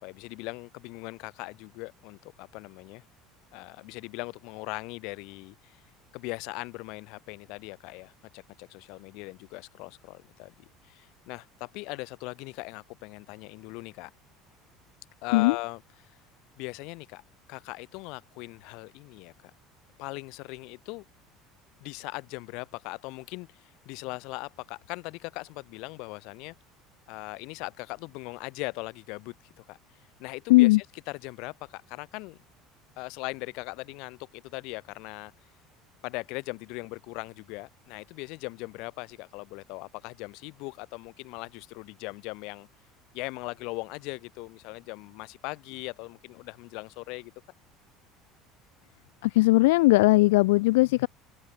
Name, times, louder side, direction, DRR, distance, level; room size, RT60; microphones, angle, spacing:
voice 1, 0.0-3.0 3.5-5.8 6.1-14.1 15.2-16.1 16.6-17.2 17.5-19.5 20.0-21.0 21.8-26.5 27.1-32.4 33.0-35.3 36.0-42.7 43.1-47.3, left 26 dB, 70° left, 3.0 m, -40 dB
voice 2, 30.5-30.8 49.2-51.1, left 21 dB, 85° left, 0.5 m, -19 dB
open air
supercardioid pair, 105°, 0 cm